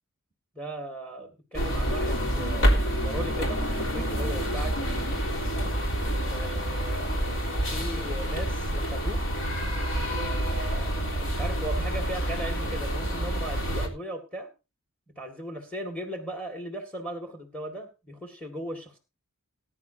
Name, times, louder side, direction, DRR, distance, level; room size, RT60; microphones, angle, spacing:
voice 1, 0.6-5.2 6.2-9.2 10.0-14.5 15.2-19.0, right 1 dB, 5° left, 4 dB, 2.0 m, -38 dB
sound 1, 1.5-13.9, equal, 65° left, 3.7 m, -28 dB
20.0 x 10.0 x 2.8 m, 0.29 s
head